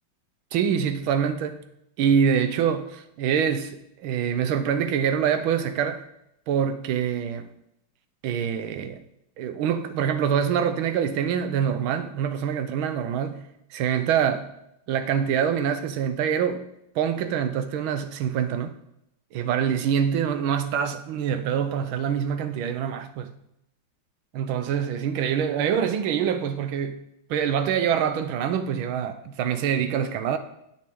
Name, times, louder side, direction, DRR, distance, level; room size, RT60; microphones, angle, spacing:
voice 1, 0.5-1.6 2.0-6.1 6.5-7.5 8.2-9.0 9.4-14.6 14.9-16.7 16.9-18.8 19.3-23.3 24.3-27.0 27.3-30.4, right 8 dB, 85° right, 1.5 m, -25 dB
9.6 x 7.3 x 3.6 m
omnidirectional pair, 2.2 m